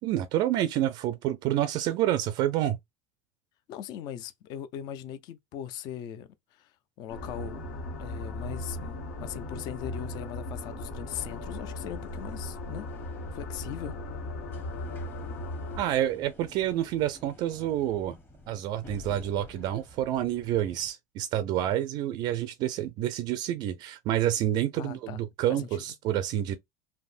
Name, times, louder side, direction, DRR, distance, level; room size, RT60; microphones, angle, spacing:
voice 1, 0.0-2.8 15.8-18.2 18.5-26.6, right 12 dB, 50° right, 0.4 m, -28 dB
voice 2, 3.7-6.7 7.0-7.6 8.0-12.9 13.3-14.0 24.8-25.2 25.5-25.7, left 10 dB, 45° left, 0.4 m, -39 dB
sound 1, 7.1-15.8, left 1 dB, 80° left, 1.2 m, -37 dB
sound 2, 11.2-20.9, left 2 dB, 20° left, 0.8 m, -51 dB
3.4 x 2.1 x 2.4 m
supercardioid pair, 140°, 9 cm